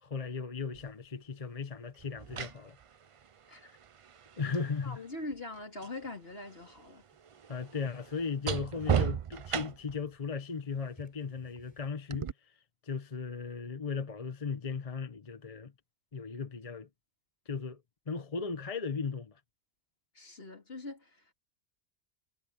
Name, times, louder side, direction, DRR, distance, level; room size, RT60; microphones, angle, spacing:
voice 1, 0.0-2.8 4.4-5.0 7.5-12.5 12.8-15.7 16.1-16.9 17.5-17.8 18.1-19.4, left 5 dB, 35° left, 1.0 m, -37 dB
sound 1, 0.7-0.9 2.0-6.0 6.3-10.1 12.1-12.3, right 8 dB, 50° right, 0.4 m, -36 dB
voice 2, 4.8-7.0 20.1-21.3, left 2 dB, 60° left, 3.6 m, -43 dB
sound 2, 5.5-12.0, equal, 5° left, 6.4 m, -65 dB
omnidirectional pair, 1.2 m